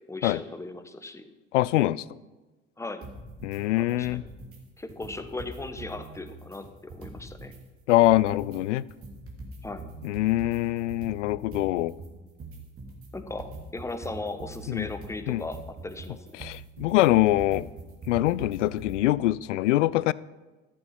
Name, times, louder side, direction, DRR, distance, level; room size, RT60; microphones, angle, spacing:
voice 1, 0.1-1.2 2.8-3.1 3.7-4.2 4.8-7.5 9.6-9.9 13.1-16.4, left 2 dB, 10° left, 10 dB, 1.0 m, -37 dB
voice 2, 1.5-2.0 3.4-4.2 7.9-8.8 10.0-11.9 14.7-14.9 15.3-15.4 16.4-17.7 18.1-20.1, left 16 dB, 70° left, 21 dB, 0.5 m, -24 dB
sound 1, 3.0-3.6 3.9-4.6 4.9-7.6 7.9-19.0, right 2 dB, 35° right, 2.8 m, -43 dB
13.0 x 7.3 x 5.9 m, 1.2 s
figure-of-eight pair, 65°, 38 cm